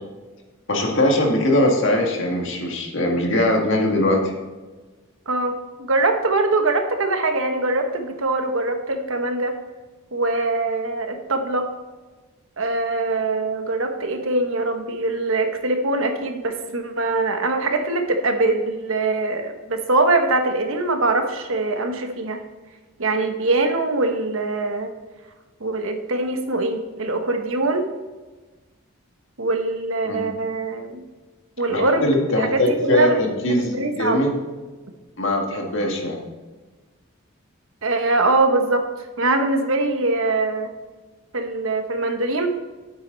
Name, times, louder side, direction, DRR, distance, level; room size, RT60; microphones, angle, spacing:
voice 1, 0.7-4.3 30.0-30.3 31.7-34.3 35.2-36.2, left 1 dB, 60° left, 0 dB, 2.0 m, -21 dB
voice 2, 5.3-9.5 10.1-11.7 12.6-22.4 23.0-24.9 25.6-27.8 29.4-31.0 31.6-32.1 32.4-33.2 33.6-34.2 37.8-38.8 39.2-40.7 41.3-42.5, right 2 dB, 70° right, 5 dB, 1.2 m, -22 dB
9.3 x 8.2 x 4.0 m, 1.2 s
head